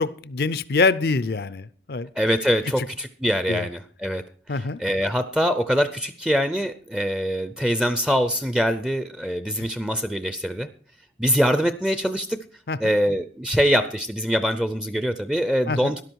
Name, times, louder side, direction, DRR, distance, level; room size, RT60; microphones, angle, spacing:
voice 1, 0.0-2.1 3.5-3.7 4.5-4.8 9.6-9.7 12.7-12.9 15.7-15.9, left 3 dB, 60° left, 17 dB, 0.5 m, -25 dB
voice 2, 2.2-4.2 4.5-10.7 11.2-12.4 12.8-16.0, equal, 5° right, 11 dB, 0.4 m, -23 dB
13.0 x 11.0 x 4.6 m, 0.42 s
head